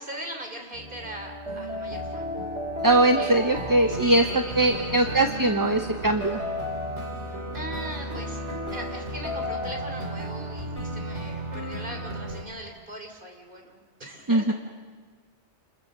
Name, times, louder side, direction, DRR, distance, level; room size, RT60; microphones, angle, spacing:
voice 1, 0.0-2.3 3.2-3.4 3.9-5.3 7.3-8.4 8.7-14.5, right 1 dB, 50° right, 3 dB, 3.5 m, -40 dB
sound 1, 0.7-12.4, equal, 80° right, 3.7 m, -33 dB
voice 2, 2.8-4.2 4.6-6.4 14.3-14.5, right 2 dB, 20° right, 7 dB, 0.8 m, -21 dB
28.0 x 21.5 x 6.7 m, 1.5 s
omnidirectional pair, 1.2 m